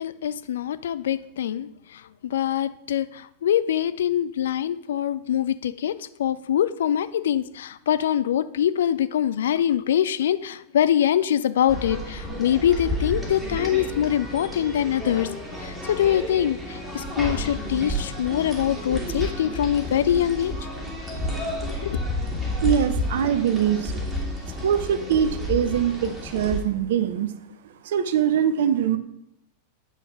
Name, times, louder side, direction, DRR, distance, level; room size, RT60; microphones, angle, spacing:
voice 1, 0.0-15.3 15.6-20.5 21.6-22.0, left 10 dB, 60° left, 15 dB, 0.3 m, -24 dB
sound 1, 11.7-26.6, left 1 dB, 10° right, 2.2 m, -31 dB
voice 2, 22.6-24.1 24.5-27.3 27.8-29.0, right 9 dB, 55° right, 12 dB, 0.6 m, -23 dB
8.2 x 5.8 x 4.5 m, 0.81 s
figure-of-eight pair, 90°, 0 cm